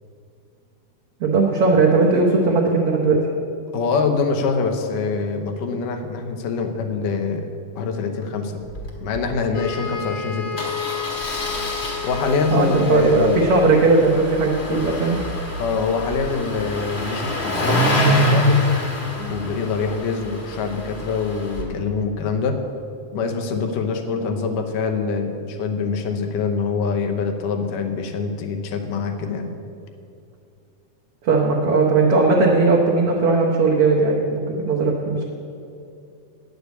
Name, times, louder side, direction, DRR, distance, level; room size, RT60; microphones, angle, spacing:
voice 1, 1.2-3.2 12.5-15.2 31.2-35.2, right 3 dB, 70° right, -1 dB, 1.4 m, -18 dB
voice 2, 3.7-8.6 9.0-10.6 12.0-13.4 15.6-18.6 19.2-22.6 23.1-29.6, left 5 dB, 85° left, 4 dB, 2.5 m, -24 dB
Engine starting, 8.6-8.9 9.1-9.2 9.5-9.7 10.6-21.6, left 1 dB, 40° left, 0.9 m, -25 dB
sound 1, 9.5-13.9, left 6 dB, 65° left, 2.3 m, -31 dB
9.3 x 6.7 x 8.1 m, 2.6 s
omnidirectional pair, 3.7 m